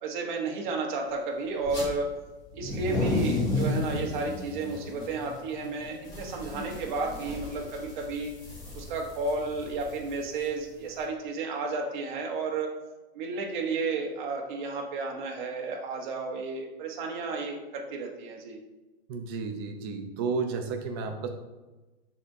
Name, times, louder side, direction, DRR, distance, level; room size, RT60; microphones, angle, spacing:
voice 1, 0.0-2.1 2.5-8.3 8.7-12.7 13.1-18.6, right 3 dB, 50° right, 0 dB, 1.2 m, -32 dB
sound 1, 1.6-1.9 2.5-11.0, left 2 dB, 10° left, 1.1 m, -33 dB
voice 2, 19.1-21.3, right 4 dB, 25° right, 5 dB, 0.5 m, -32 dB
11.5 x 4.2 x 2.7 m, 1.1 s
supercardioid pair, 165°, 31 cm